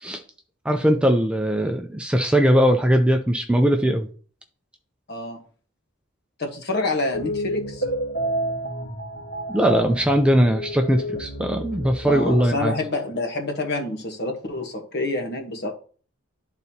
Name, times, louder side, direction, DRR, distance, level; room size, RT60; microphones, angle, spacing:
voice 1, 0.7-4.1 9.5-12.7, equal, 5° right, 0.5 m, -20 dB
voice 2, 5.1-5.4 6.4-7.8 12.0-15.7, left 2 dB, 55° left, 1.3 m, -27 dB
sound 1, 7.1-12.5, right 1 dB, 70° left, 2.3 m, -30 dB
11.5 x 4.0 x 2.8 m
head